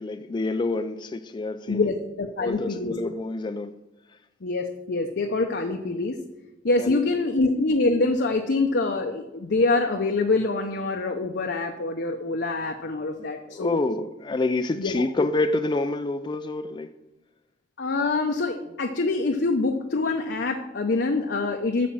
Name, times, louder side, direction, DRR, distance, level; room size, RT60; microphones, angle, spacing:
voice 1, 0.0-1.9 2.4-3.8 6.8-7.0 13.2-16.9, left 2 dB, 25° left, 0.3 m, -27 dB
voice 2, 1.7-2.9 4.4-6.2 6.6-13.8 14.8-15.0 17.8-21.9, left 3 dB, 60° left, 0.7 m, -25 dB
8.5 x 6.2 x 7.0 m
head